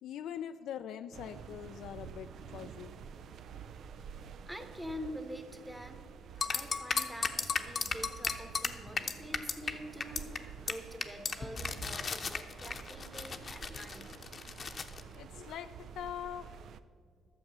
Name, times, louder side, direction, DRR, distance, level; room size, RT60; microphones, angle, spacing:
voice 1, 0.0-2.9 15.1-16.5, left 9 dB, 80° left, 8 dB, 0.3 m, -43 dB
sound 1, 1.1-16.8, right 7 dB, 70° right, 0.5 m, -49 dB
voice 2, 4.5-6.0 6.5-14.1, equal, 5° right, 7 dB, 1.2 m, -46 dB
sound 2, 6.4-9.7 10.0-10.4 10.7-10.8 11.0-15.0, left 5 dB, 40° left, 0.8 m, -35 dB
11.5 x 7.1 x 6.6 m, 2.2 s
cardioid pair, 90°, 0 cm